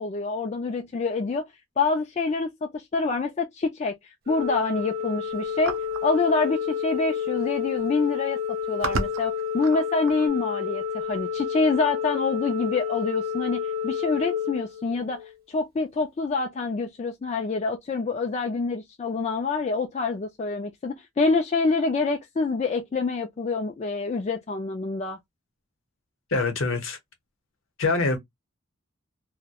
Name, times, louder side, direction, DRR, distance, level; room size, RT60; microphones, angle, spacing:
voice 1, 0.0-1.5 1.8-5.8 6.0-8.4 8.7-25.2, left 3 dB, 30° left, 0.3 m, -26 dB
Organ, 4.3-15.3, left 7 dB, 45° right, 0.9 m, -30 dB
sound 1, 5.6-6.1 7.2-7.3 7.5-7.9 8.5-10.3, right 4 dB, 70° right, 0.5 m, -32 dB
voice 2, 26.3-27.0 27.8-28.2, left 3 dB, 70° left, 0.8 m, -24 dB
2.3 x 2.1 x 2.7 m
head